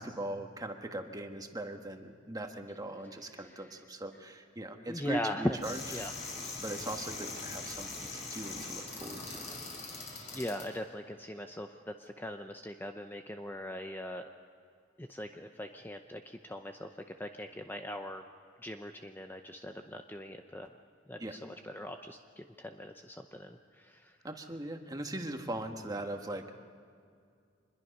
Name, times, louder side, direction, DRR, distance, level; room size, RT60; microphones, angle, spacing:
voice 1, 0.0-5.8 6.6-9.4 21.2-21.4 24.2-26.5, right 1 dB, 20° right, 4 dB, 1.5 m, -40 dB
voice 2, 3.4-3.7 4.9-6.1 10.3-14.2 15.0-18.2 18.6-20.7 21.1-24.2, left 1 dB, 10° left, 5 dB, 0.7 m, -40 dB
sound 1, 5.6-10.6, left 3 dB, 40° left, 6.3 m, -42 dB
25.5 x 21.5 x 5.4 m, 2.3 s
head